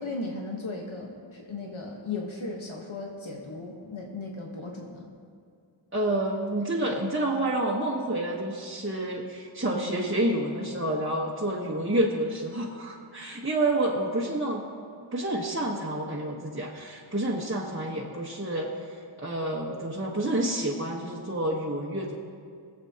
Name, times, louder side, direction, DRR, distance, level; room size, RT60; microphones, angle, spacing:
voice 1, 0.0-5.1, left 3 dB, 75° left, -1 dB, 1.3 m, -36 dB
voice 2, 5.9-14.6 15.1-22.1, right 1 dB, 25° right, -5 dB, 1.3 m, -29 dB
23.5 x 7.9 x 2.9 m, 2.4 s
wide cardioid pair, 50°, 48 cm